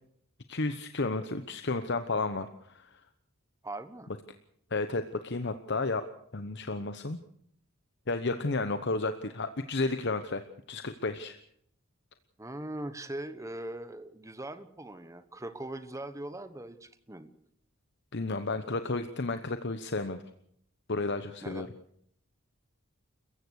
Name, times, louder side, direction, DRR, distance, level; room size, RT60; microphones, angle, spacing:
voice 1, 0.5-2.9 4.7-6.0 6.3-7.2 8.1-10.4 10.7-11.4 18.1-20.2 20.9-21.7, left 3 dB, 55° left, 9 dB, 1.0 m, -32 dB
voice 2, 3.6-4.1 12.4-17.3 21.4-21.7, right 1 dB, 15° right, 11 dB, 1.3 m, -40 dB
29.0 x 15.5 x 6.5 m, 0.67 s
head